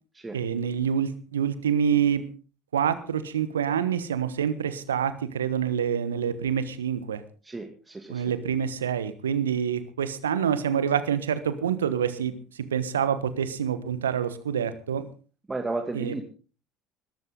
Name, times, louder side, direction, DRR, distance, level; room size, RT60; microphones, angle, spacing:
voice 1, 0.3-2.2 2.7-7.2 8.1-15.0 15.9-16.2, right 8 dB, 80° right, 14 dB, 1.3 m, -27 dB
voice 2, 7.4-8.2 15.5-16.2, right 3 dB, 15° right, 3 dB, 2.3 m, -33 dB
20.5 x 13.5 x 3.9 m, 0.37 s
figure-of-eight pair, 60°, 0 cm